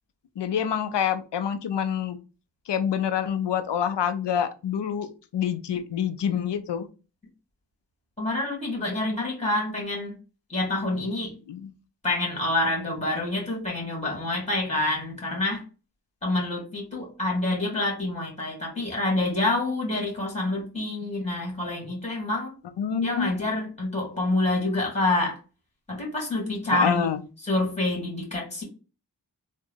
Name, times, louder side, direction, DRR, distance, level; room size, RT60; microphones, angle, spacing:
voice 1, 0.4-2.2 2.7-6.9 11.5-11.7 22.8-23.3 26.7-27.2, left 8 dB, 80° left, 11 dB, 0.5 m, -27 dB
voice 2, 8.2-10.2 10.5-11.3 12.0-15.6 16.2-22.5 23.0-25.4 25.9-27.1 27.4-28.6, left 2 dB, 15° left, -1 dB, 2.0 m, -27 dB
3.5 x 2.2 x 3.7 m, 0.33 s
cardioid pair, 45°, 41 cm